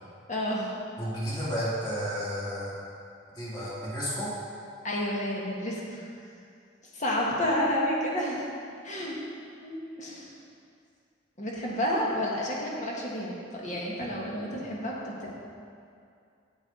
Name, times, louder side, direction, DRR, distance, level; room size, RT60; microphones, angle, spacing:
voice 1, 0.3-0.7 1.3-1.4 4.8-6.1 6.9-8.5 8.8-9.2 9.6-10.3 11.4-15.3, left 1 dB, 40° left, -3 dB, 1.4 m, -30 dB
voice 2, 1.0-2.8 3.3-4.3, equal, 25° left, -8 dB, 2.3 m, -32 dB
8.7 x 8.4 x 3.8 m, 2.4 s
head